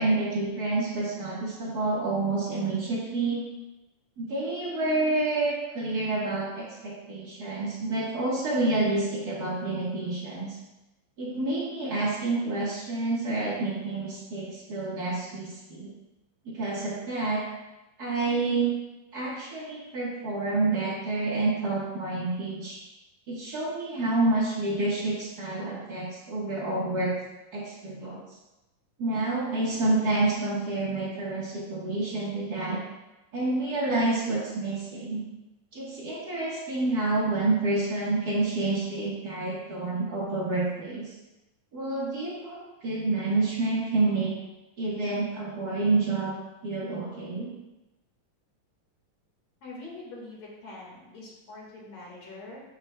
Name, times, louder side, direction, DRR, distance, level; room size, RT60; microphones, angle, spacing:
voice 1, 0.0-3.4 4.2-10.6 11.2-15.9 16.4-17.5 18.0-18.7 19.1-22.8 23.3-27.1 27.5-28.2 29.0-32.8 33.3-35.2 35.7-41.1 41.7-44.3 44.8-46.3 46.6-47.5, right 2 dB, 50° right, -6 dB, 1.1 m, -28 dB
voice 2, 49.6-52.6, left 2 dB, 55° left, -4 dB, 2.8 m, -44 dB
7.8 x 7.6 x 2.3 m, 0.99 s
omnidirectional pair, 4.0 m